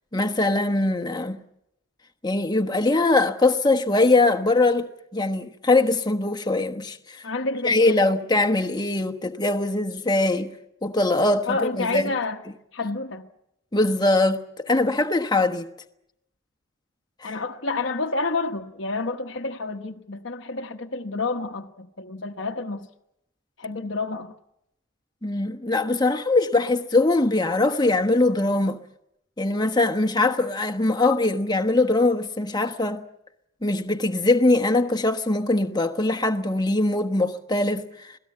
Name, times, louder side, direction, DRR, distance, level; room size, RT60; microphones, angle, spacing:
voice 1, 0.1-1.4 2.2-7.2 7.6-10.5 10.8-12.0 13.7-15.7 17.2-17.3 25.2-28.8 29.4-33.0 33.6-38.2, left 2 dB, 20° left, 1.2 m, -22 dB
voice 2, 7.2-8.2 11.5-12.4 12.7-13.3 17.2-22.9 23.6-24.3, left 3 dB, 60° left, 1.1 m, -29 dB
26.5 x 18.0 x 8.6 m
head